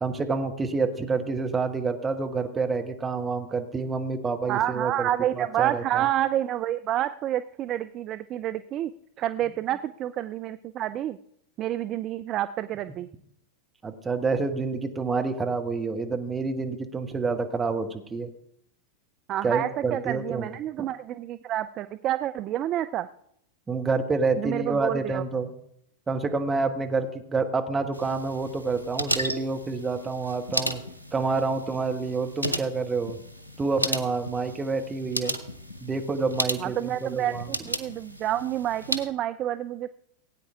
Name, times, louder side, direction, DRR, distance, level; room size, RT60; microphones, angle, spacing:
voice 1, 0.0-5.1 5.4-6.0 13.8-18.3 19.4-20.5 23.7-25.5 26.1-30.8 31.1-33.2 33.6-35.4 35.8-37.5, right 4 dB, 15° right, 5 dB, 1.3 m, -28 dB
voice 2, 4.5-8.9 9.2-11.2 11.6-13.1 19.3-23.1 24.4-25.2 36.6-39.9, right 12 dB, 35° right, 13 dB, 0.4 m, -29 dB
sound 1, 27.9-39.1, equal, 85° left, 1.0 m, -34 dB
17.0 x 9.1 x 3.7 m, 0.73 s
figure-of-eight pair, 90°, 0 cm